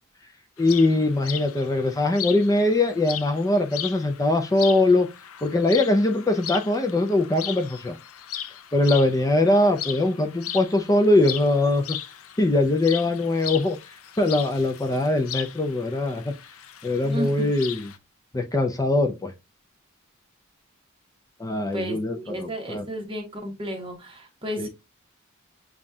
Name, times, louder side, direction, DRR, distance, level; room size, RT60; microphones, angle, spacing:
sound 1, 0.6-18.0, left 11 dB, 75° left, 0.5 m, -37 dB
voice 1, 0.6-5.1 5.4-8.0 8.7-12.0 12.4-13.8 14.2-16.3 16.8-17.9 18.3-19.3 21.4-22.8 24.6-24.7, left 2 dB, 15° left, 0.5 m, -22 dB
voice 2, 17.0-17.5 21.7-24.7, equal, 25° right, 1.3 m, -32 dB
7.2 x 2.4 x 2.7 m
head